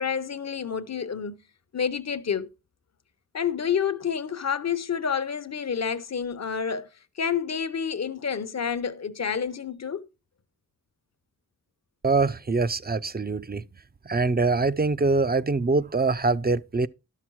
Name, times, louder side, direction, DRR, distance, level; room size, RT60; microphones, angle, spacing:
voice 1, 0.0-1.3 1.7-2.5 3.3-6.9 7.2-10.1, left 7 dB, 55° left, 0.9 m, -29 dB
voice 2, 12.0-13.6 14.1-16.9, right 3 dB, 30° right, 0.5 m, -24 dB
12.0 x 5.8 x 4.6 m
cardioid pair, 55°, 32 cm